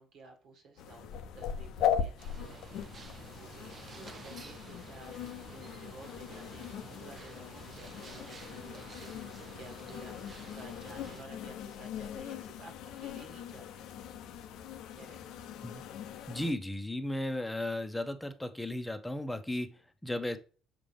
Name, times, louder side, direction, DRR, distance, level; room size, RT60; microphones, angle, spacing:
voice 1, 0.0-5.2 5.5-10.1 10.5-14.0 14.9-15.4, right 3 dB, 55° right, 1.7 m, -54 dB
sound 1, 0.8-16.5, left 8 dB, 55° left, 0.6 m, -39 dB
sound 2, 2.2-11.2, right 5 dB, 35° right, 0.8 m, -51 dB
voice 2, 16.3-20.4, left 1 dB, 10° left, 0.9 m, -35 dB
6.8 x 5.0 x 3.3 m
figure-of-eight pair, 50°, 0 cm